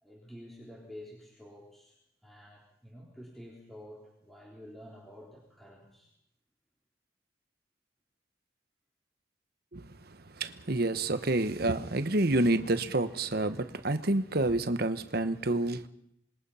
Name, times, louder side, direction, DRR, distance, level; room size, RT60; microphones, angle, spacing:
voice 1, 0.0-2.0 2.2-6.1, equal, ahead, 3.6 m, -49 dB
voice 2, 10.4-15.9, right 2 dB, 55° right, 1.2 m, -28 dB
26.5 x 21.5 x 5.7 m
head